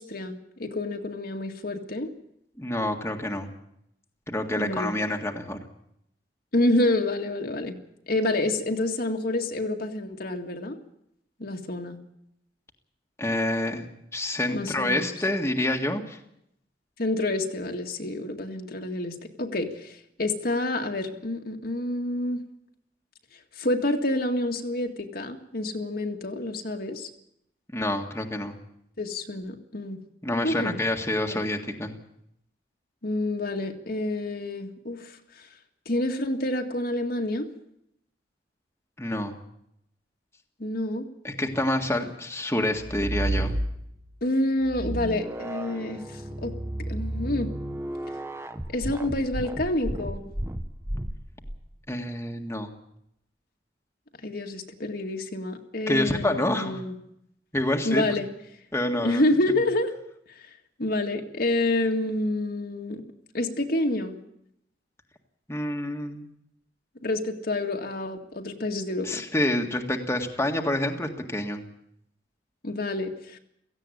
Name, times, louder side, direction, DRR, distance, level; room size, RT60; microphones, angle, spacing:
voice 1, 0.0-2.1 4.6-5.0 6.5-7.8 8.1-10.8 11.4-12.0 14.5-15.2 17.0-22.4 23.6-27.1 29.0-30.0 30.4-30.8 31.3-31.4 33.0-35.5 35.9-37.5 40.6-41.0 44.2-46.5 46.9-47.5 48.7-50.3 54.2-57.0 57.8-58.3 59.0-59.9 60.4-60.5 60.8-63.0 63.3-64.2 67.0-69.2 72.6-73.4, left 1 dB, 60° left, 3 dB, 2.0 m, -28 dB
voice 2, 2.6-3.5 4.3-5.6 13.2-13.9 14.1-16.2 27.7-28.6 30.2-31.9 39.0-39.4 41.2-43.5 51.9-52.7 55.9-56.8 57.5-58.0 58.7-59.2 65.5-66.3 69.0-71.6, left 1 dB, 15° left, 2 dB, 1.8 m, -27 dB
sound 1, 42.7-44.1 44.6-51.6, right 1 dB, 15° right, 1.0 m, -32 dB
17.0 x 15.5 x 9.9 m, 0.76 s
head